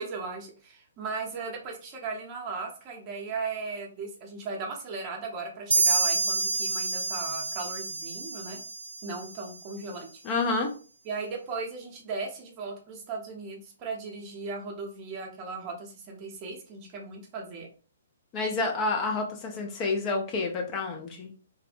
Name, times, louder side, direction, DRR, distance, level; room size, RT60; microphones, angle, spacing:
voice 1, 0.0-8.6 9.0-10.1 11.0-17.7, right 4 dB, 30° right, 0 dB, 0.7 m, -37 dB
sound 1, 5.7-9.3, right 3 dB, 70° right, 0.5 m, -28 dB
voice 2, 10.2-10.7 18.3-21.3, left 3 dB, 25° left, 1 dB, 0.4 m, -29 dB
2.6 x 2.0 x 2.5 m, 0.39 s
figure-of-eight pair, 125°, 0 cm